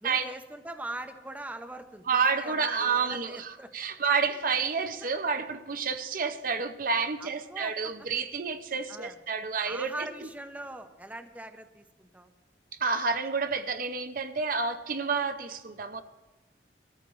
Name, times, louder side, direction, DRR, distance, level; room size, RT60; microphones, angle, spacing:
voice 1, 0.0-3.7 4.4-4.5 7.2-7.9 8.9-9.2 9.6-12.3, right 1 dB, 10° right, 7 dB, 0.6 m, -42 dB
voice 2, 2.1-10.1 12.8-16.0, right 5 dB, 50° right, 9 dB, 0.6 m, -29 dB
22.0 x 13.5 x 3.1 m, 1.2 s
head